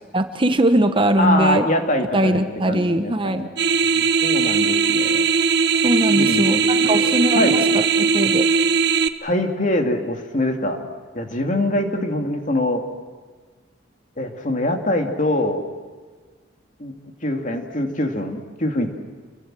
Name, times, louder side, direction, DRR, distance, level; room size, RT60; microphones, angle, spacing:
voice 1, 0.1-1.7 2.1-3.5 5.8-8.5, right 1 dB, 25° right, 8 dB, 1.1 m, -20 dB
voice 2, 1.2-3.5 3.9-5.2 6.1-7.6 9.2-10.8 11.1-12.8 14.2-15.6 16.8-16.9 17.2-18.9, left 1 dB, 40° left, 4 dB, 2.6 m, -24 dB
sound 1, 3.6-9.1, right 5 dB, 55° right, 1.0 m, -19 dB
28.5 x 23.0 x 7.7 m, 1.5 s
head